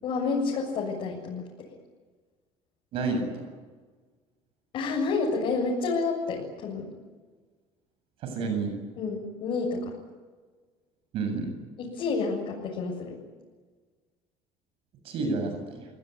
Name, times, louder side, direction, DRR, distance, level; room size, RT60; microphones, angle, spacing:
voice 1, 0.0-1.4 4.7-6.9 9.0-9.9 11.8-13.1, left 4 dB, 55° left, -3 dB, 7.5 m, -29 dB
voice 2, 2.9-3.4 8.2-8.7 11.1-11.5 15.0-15.9, right 4 dB, 60° right, 6 dB, 7.9 m, -29 dB
29.5 x 19.0 x 9.8 m, 1.4 s
cardioid pair, 160°, 11 cm